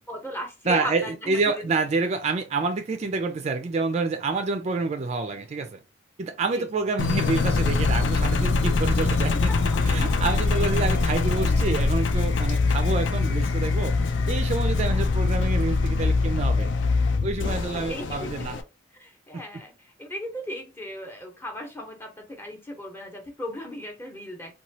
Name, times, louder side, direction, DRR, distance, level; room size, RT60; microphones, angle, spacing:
voice 1, 0.1-1.7 6.4-6.7 9.3-10.2 11.1-11.2 14.9-15.0 17.7-18.6 18.9-24.5, equal, 15° left, 0.8 m, -37 dB
voice 2, 0.7-5.8 6.2-9.5 9.8-14.0 14.3-16.7 17.2-18.6 19.3-19.4, right 3 dB, 35° right, 0.3 m, -28 dB
Engine, 7.0-18.6, left 3 dB, 75° left, 0.4 m, -23 dB
3.0 x 2.2 x 2.7 m
head